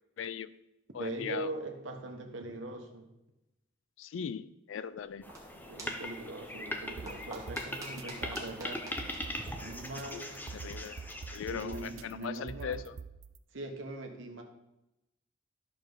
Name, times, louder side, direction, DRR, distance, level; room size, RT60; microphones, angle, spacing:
voice 1, 0.2-0.5 0.9-1.5 4.0-5.3 10.1-10.2 10.5-11.0 11.3-13.0, left 7 dB, 65° left, 16 dB, 0.3 m, -39 dB
voice 2, 1.0-3.1 5.1-5.2 5.5-8.8 9.6-10.4 11.5-12.8 13.5-14.4, right 2 dB, 65° right, 3 dB, 1.3 m, -41 dB
sound 1, 5.0-10.3, right 2 dB, 15° right, 1.6 m, -50 dB
sound 2, 5.2-12.2, left 1 dB, 10° left, 0.7 m, -41 dB
sound 3, 6.9-13.4, right 5 dB, 85° right, 0.5 m, -46 dB
11.0 x 6.6 x 3.9 m, 0.93 s
head